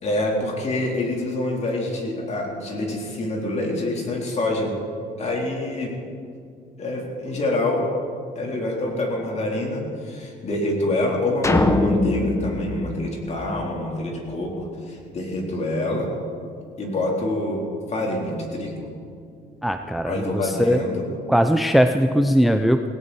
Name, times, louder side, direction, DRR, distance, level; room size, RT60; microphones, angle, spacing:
voice 1, 0.0-4.7 5.2-5.9 6.8-7.8 8.4-16.1 16.8-18.9 20.1-21.1, left 1 dB, 40° left, -1 dB, 3.7 m, -26 dB
sound 1, 11.4-13.9, left 2 dB, 15° left, 1.0 m, -22 dB
voice 2, 19.6-20.8 21.3-22.9, equal, ahead, 7 dB, 0.5 m, -20 dB
17.5 x 17.5 x 4.3 m, 2.4 s
cardioid pair, 110°, 17 cm